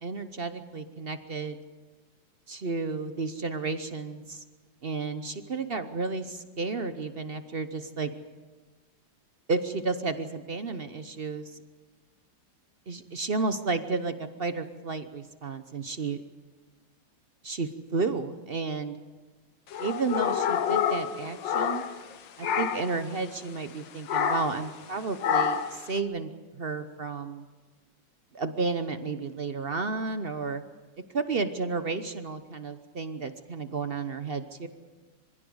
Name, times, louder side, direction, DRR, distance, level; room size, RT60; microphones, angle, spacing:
voice 1, 0.0-1.6 2.5-4.4 4.8-8.1 9.5-11.6 12.9-16.2 17.4-17.7 17.9-19.0 19.8-21.8 22.4-27.4 28.3-30.6 31.1-34.7, right 4 dB, 45° right, 10 dB, 0.8 m, -32 dB
sound 1, 19.7-22.1 22.4-23.0 24.1-24.6 25.2-25.8, left 8 dB, 80° left, 1.7 m, -27 dB
25.0 x 16.0 x 7.9 m, 1.3 s
omnidirectional pair, 2.0 m